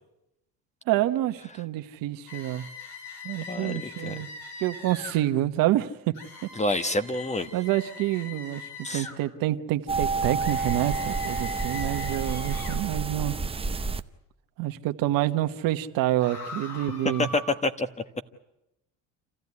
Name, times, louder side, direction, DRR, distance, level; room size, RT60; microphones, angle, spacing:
voice 1, 0.9-2.6 3.2-4.3 4.6-6.1 7.5-13.4 14.6-17.3, right 14 dB, 70° right, 1.3 m, -27 dB
sound 1, 2.3-5.2 6.1-9.2 10.4-12.8 16.2-17.4, left 4 dB, 75° left, 6.3 m, -42 dB
voice 2, 3.4-4.2 6.5-7.5 8.8-9.1 17.2-17.9, left 2 dB, 20° left, 1.4 m, -28 dB
sound 2, 9.9-14.0, right 4 dB, 15° right, 0.8 m, -29 dB
27.5 x 15.0 x 9.7 m
supercardioid pair, 95°, 35 cm